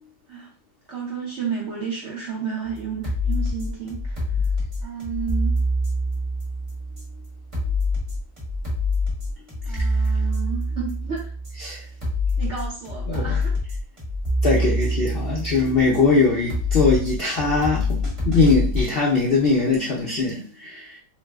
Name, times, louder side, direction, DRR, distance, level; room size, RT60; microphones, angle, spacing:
voice 1, 0.9-4.3 4.8-5.6 9.6-11.3 12.4-13.6, right 6 dB, 60° right, 0.7 m, -32 dB
sound 1, 2.7-18.8, left 1 dB, 25° right, 1.0 m, -26 dB
voice 2, 14.4-21.0, left 3 dB, 75° left, 0.5 m, -21 dB
3.0 x 2.0 x 3.3 m
omnidirectional pair, 1.8 m